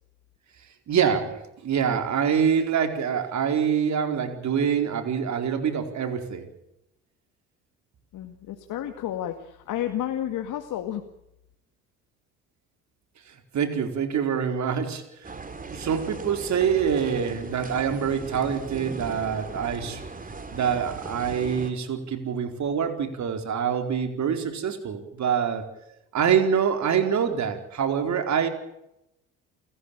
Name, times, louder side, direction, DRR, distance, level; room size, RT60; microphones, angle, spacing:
voice 1, 0.9-6.5 13.3-15.3 15.7-20.0 20.5-25.6 26.1-28.5, right 7 dB, 55° right, 6 dB, 4.5 m, -25 dB
voice 2, 8.1-11.0, left 11 dB, 65° left, 6 dB, 2.1 m, -31 dB
sound 1, 15.2-21.7, right 3 dB, 25° right, 3.5 m, -38 dB
29.5 x 14.5 x 9.0 m, 0.86 s
supercardioid pair, 65°, 34 cm